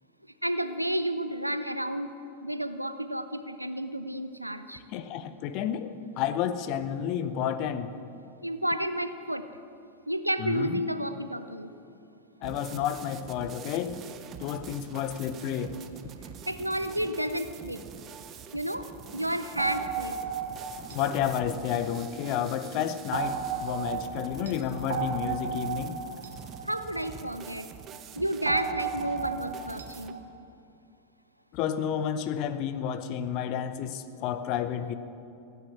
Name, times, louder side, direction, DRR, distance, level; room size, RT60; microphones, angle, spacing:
voice 1, 0.4-2.1 2.4-4.8 8.4-9.5 10.1-11.7 16.5-17.8 18.5-20.1 26.7-27.7 28.1-30.2, right 1 dB, 90° right, 11 dB, 0.6 m, -31 dB
voice 2, 4.9-7.9 10.4-10.8 12.4-14.0 14.4-15.7 20.9-26.0 31.5-34.9, left 9 dB, 40° left, 12 dB, 0.8 m, -31 dB
sound 1, 12.4-30.1, right 8 dB, 30° right, 0.8 m, -45 dB
sound 2, 19.6-22.3 23.1-27.7 28.5-30.2, right 6 dB, 65° right, 1.3 m, -35 dB
15.5 x 9.4 x 7.3 m, 2.6 s
figure-of-eight pair, 90°, 0 cm